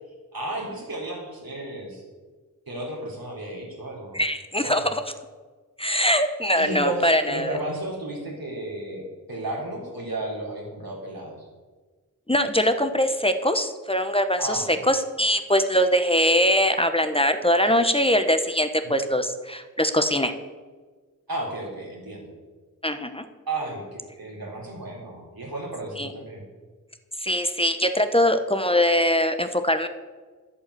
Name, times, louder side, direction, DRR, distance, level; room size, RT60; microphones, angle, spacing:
voice 1, 0.3-2.0 2.7-4.2 4.6-4.9 6.6-11.4 14.4-14.8 18.8-19.0 21.3-22.3 23.5-26.4, right 2 dB, 85° right, -3 dB, 4.1 m, -33 dB
voice 2, 4.1-5.0 5.8-7.6 12.3-20.3 22.8-23.2 26.0-26.1 27.2-29.9, equal, 15° left, 8 dB, 1.0 m, -22 dB
11.0 x 8.4 x 8.4 m, 1.4 s
wide cardioid pair, 55°, 35 cm